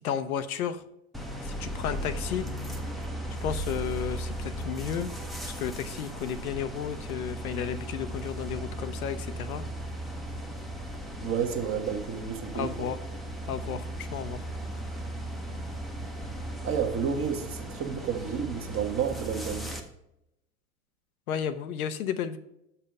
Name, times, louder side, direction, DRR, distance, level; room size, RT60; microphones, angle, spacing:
voice 1, 0.0-0.8 1.4-2.5 3.4-5.1 5.4-9.6 12.5-13.0 13.5-14.5 21.3-22.4, left 8 dB, 70° left, 11 dB, 0.7 m, -33 dB
sound 1, 1.1-19.8, right 1 dB, ahead, 0.7 m, -37 dB
voice 2, 11.2-12.9 16.6-19.7, right 7 dB, 30° right, 5 dB, 1.1 m, -31 dB
6.5 x 5.6 x 5.3 m, 0.84 s
hypercardioid pair, 90°, 44 cm